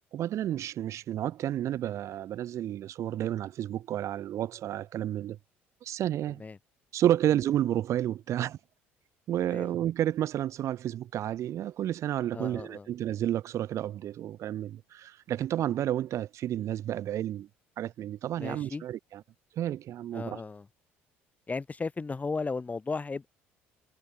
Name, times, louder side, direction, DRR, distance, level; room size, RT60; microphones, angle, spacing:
voice 1, 0.1-5.4 5.8-6.4 6.9-8.6 9.3-17.5 17.8-19.2 19.5-20.4, right 12 dB, 60° right, 1.7 m, -31 dB
voice 2, 12.3-12.9 18.4-18.8 20.1-20.7 21.5-23.3, left 4 dB, 25° left, 4.8 m, -35 dB
hypercardioid pair, 65°, 6 cm